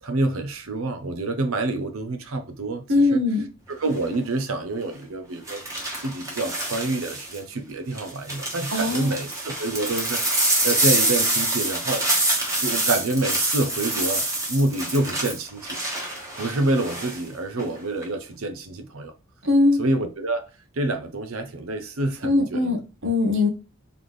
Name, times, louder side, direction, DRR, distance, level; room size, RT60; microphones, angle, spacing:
voice 1, 0.0-3.2 3.7-5.6 6.0-12.1 12.6-15.8 16.4-19.1 19.8-20.4 20.7-22.8, right 2 dB, 80° right, 0.8 m, -27 dB
voice 2, 2.9-3.5 8.7-9.2 19.4-19.8 22.2-23.5, left 2 dB, 65° right, 1.2 m, -21 dB
sound 1, 3.8-4.1 5.5-7.4 7.9-17.2 17.6-18.0, right 2 dB, 15° right, 1.4 m, -26 dB
4.0 x 3.5 x 3.1 m
head